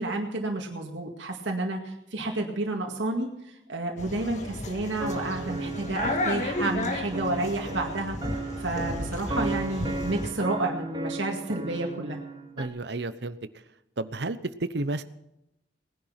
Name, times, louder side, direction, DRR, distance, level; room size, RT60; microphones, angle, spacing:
voice 1, 0.0-12.2, right 2 dB, 85° right, 1 dB, 2.1 m, -30 dB
sound 1, 4.0-10.3, left 1 dB, 40° left, 2.0 m, -34 dB
sound 2, 5.0-12.7, right 2 dB, 25° right, 1.5 m, -35 dB
voice 2, 12.6-13.4 14.0-15.0, right 2 dB, 65° right, 13 dB, 0.9 m, -31 dB
19.0 x 10.5 x 5.9 m, 0.87 s
head